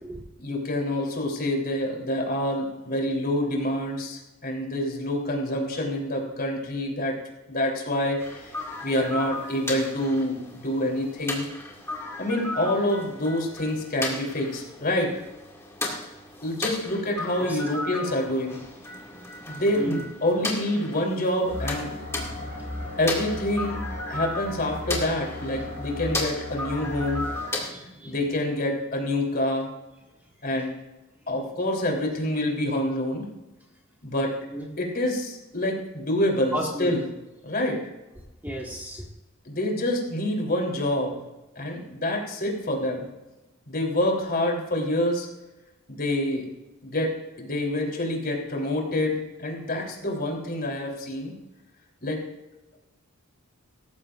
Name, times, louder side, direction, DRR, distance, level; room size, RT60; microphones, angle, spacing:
voice 1, 0.4-7.2 7.5-8.5 8.8-11.5 12.2-15.2 16.4-18.6 19.5-22.0 23.0-23.8 24.1-27.3 28.0-29.7 30.4-30.8 31.3-33.3 34.0-34.3 34.8-37.1 37.4-37.8 39.5-41.2 41.6-43.1 43.7-45.3 45.9-46.5 46.8-51.3 52.0-52.2, left 1 dB, 45° left, 0 dB, 3.5 m, -27 dB
sound 1, 8.2-27.7, left 2 dB, 15° left, 2.3 m, -35 dB
voice 2, 18.9-20.0 22.3-23.0 27.6-28.1 34.5-34.7 36.5-36.9 38.4-39.0, right 1 dB, 10° right, -2 dB, 1.9 m, -35 dB
sound 2, 21.4-27.5, left 1 dB, 50° right, 5.7 m, -36 dB
18.0 x 14.5 x 2.6 m, 1.0 s
head